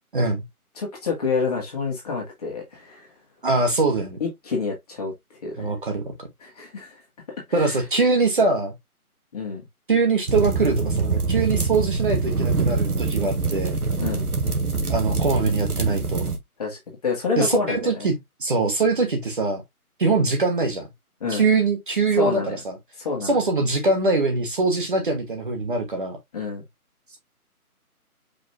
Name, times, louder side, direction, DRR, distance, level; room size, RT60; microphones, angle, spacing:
voice 1, 0.1-0.4 3.4-4.2 5.5-6.3 7.5-8.7 9.9-13.8 14.9-16.2 17.4-19.6 20.0-20.9 21.3-22.8 23.2-26.2, right 3 dB, 35° right, 1.2 m, -23 dB
voice 2, 0.8-3.0 4.2-5.1 5.4-5.7 6.4-7.0 7.5-7.8 9.3-9.6 14.0-14.3 16.6-18.1 21.2-21.5 22.1-22.6 23.0-23.4 26.3-26.6, left 4 dB, 25° left, 1.9 m, -28 dB
sound 1, 10.3-16.4, right 4 dB, 75° right, 1.7 m, -24 dB
5.2 x 4.0 x 2.5 m
figure-of-eight pair, 155°, 45 cm